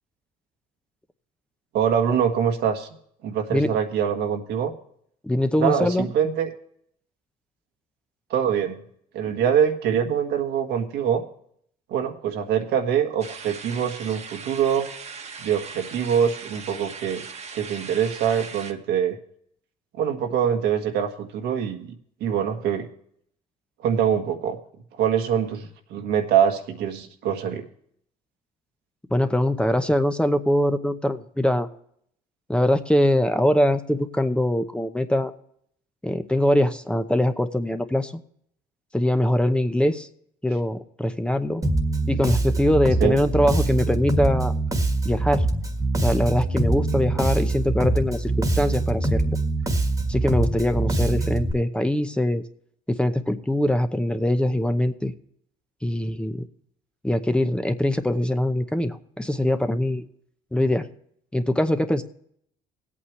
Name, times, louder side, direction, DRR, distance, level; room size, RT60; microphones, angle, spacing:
voice 1, 1.7-2.9 3.2-4.7 5.6-6.5 8.3-8.8 9.1-11.2 11.9-14.9 15.4-17.2 17.5-19.2 20.0-21.9 22.2-22.9 23.8-24.6 25.0-27.7 43.0-43.2 46.9-47.3, right 8 dB, 80° right, 4 dB, 1.6 m, -24 dB
voice 2, 5.2-6.1 29.1-31.7 32.5-35.3 36.0-38.2 38.9-40.1 40.4-41.6 42.1-44.5 45.0-45.4 46.0-49.4 50.1-52.4 52.9-55.1 55.8-56.5 57.0-60.0 60.5-60.9 61.3-62.0, left 1 dB, 5° left, 8 dB, 0.8 m, -22 dB
sound 1, 13.2-18.7, right 5 dB, 40° right, 1.3 m, -39 dB
Bass guitar, 41.6-51.5, right 2 dB, 20° right, 1.6 m, -24 dB
20.0 x 8.6 x 3.1 m, 0.67 s
cardioid pair, 110°, 17 cm